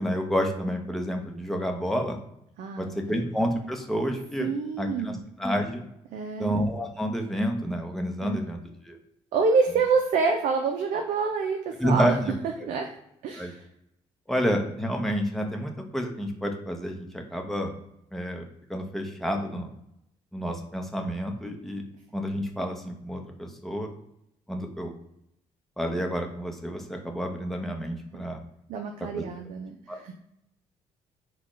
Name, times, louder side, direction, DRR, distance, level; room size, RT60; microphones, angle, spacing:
voice 1, 0.0-2.2 2.8-4.5 4.8-5.8 6.4-8.6 8.8-9.0 11.8-12.3 13.4-13.5 14.3-17.8 18.1-18.4 18.7-19.7 20.3-21.8 22.1-23.9 24.5-24.9 25.8-28.4 29.2-29.3 29.9-30.1, equal, ahead, 2 dB, 0.8 m, -29 dB
voice 2, 2.6-3.2 4.4-5.2 6.1-6.5 8.2-8.4 9.3-12.2 12.6-13.0 13.2-13.7 28.7-30.1, right 4 dB, 65° right, 5 dB, 0.5 m, -27 dB
3.9 x 2.3 x 3.1 m, 0.79 s
supercardioid pair, 60°, 14 cm